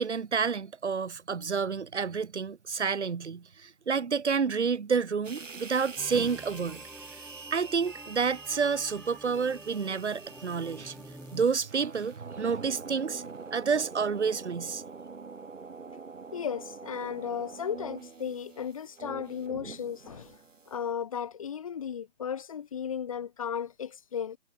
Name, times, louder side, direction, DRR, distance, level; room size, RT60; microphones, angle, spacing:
voice 1, 0.0-6.8 7.5-11.0 11.3-14.8, right 5 dB, 65° right, 2.6 m, -29 dB
sound 1, 5.2-20.9, right 4 dB, 85° right, 7.9 m, -45 dB
sound 2, 6.0-11.5, equal, ahead, 3.3 m, -49 dB
voice 2, 16.3-20.4 20.7-24.4, left 8 dB, 25° left, 1.9 m, -35 dB
hypercardioid pair, 175°, 37 cm